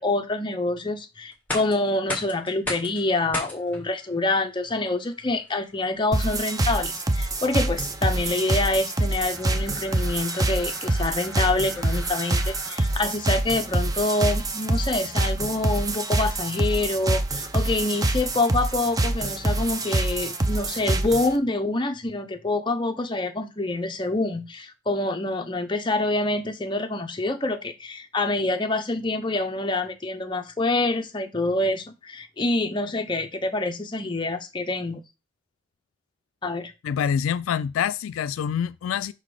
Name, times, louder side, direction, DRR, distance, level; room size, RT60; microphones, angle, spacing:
voice 1, 0.0-35.0 36.4-36.7, left 2 dB, 25° left, 0.6 m, -26 dB
sound 1, 1.3-13.2, left 2 dB, 5° left, 1.7 m, -39 dB
sound 2, 6.1-21.4, right 2 dB, 15° right, 0.4 m, -26 dB
voice 2, 36.8-39.1, left 8 dB, 80° left, 0.3 m, -26 dB
5.8 x 3.9 x 4.8 m
head